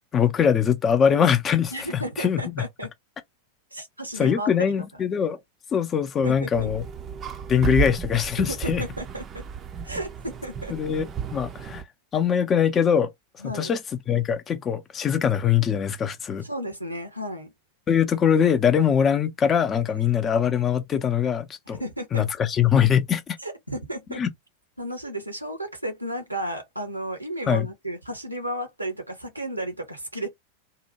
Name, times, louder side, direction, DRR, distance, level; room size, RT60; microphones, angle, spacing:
voice 1, 0.1-2.4 4.2-5.4 5.7-6.8 7.5-8.8 10.7-11.1 11.3-11.8 12.1-13.1 13.4-13.8 14.1-16.4 17.9-21.8 22.1-23.4 24.2-24.3 27.5-27.7, left 8 dB, 25° left, 0.6 m, -22 dB
voice 2, 1.7-2.9 3.7-4.5 6.2-6.7 8.5-9.5 9.8-10.8 13.4-13.7 16.4-17.5 20.0-20.3 21.7-22.3 23.4-24.2 24.8-30.3, right 1 dB, 85° right, 0.8 m, -33 dB
sound 1, 6.5-11.8, right 7 dB, 25° right, 0.5 m, -33 dB
2.8 x 2.2 x 2.7 m
figure-of-eight pair, 90°, 0 cm